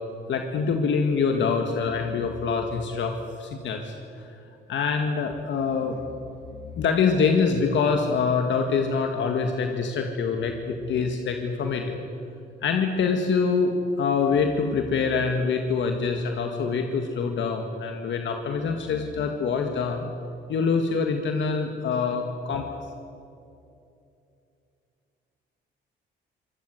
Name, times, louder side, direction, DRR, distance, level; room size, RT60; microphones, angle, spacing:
voice 1, 0.3-3.1 3.4-4.3 4.7-6.0 6.8-12.0 12.6-13.7 14.0-20.1 20.5-22.8, left 5 dB, 70° left, 4 dB, 1.9 m, -25 dB
24.5 x 17.5 x 7.9 m, 2.6 s
cardioid pair, 90°, 20 cm